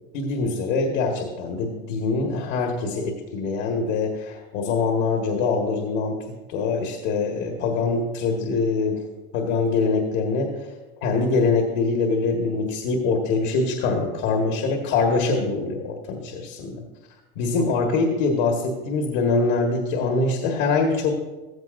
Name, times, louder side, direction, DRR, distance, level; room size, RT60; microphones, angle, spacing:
voice 1, 0.1-6.2 6.5-9.0 9.3-10.5 11.0-16.8 17.4-21.1, left 4 dB, 60° left, 2 dB, 1.8 m, -23 dB
15.0 x 15.0 x 2.6 m, 1.2 s
supercardioid pair, 165°, 30 cm